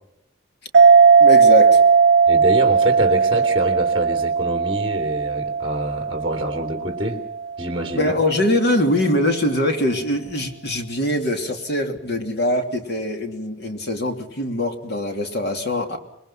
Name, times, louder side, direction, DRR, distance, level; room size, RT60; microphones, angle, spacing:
sound 1, 0.7-7.8, right 5 dB, 65° right, 0.8 m, -17 dB
voice 1, 1.2-1.8 7.9-16.0, left 1 dB, 60° left, 5 dB, 2.9 m, -22 dB
voice 2, 2.3-7.2 7.6-8.1, right 1 dB, 25° right, 4 dB, 2.9 m, -26 dB
26.5 x 21.0 x 5.8 m, 0.83 s
head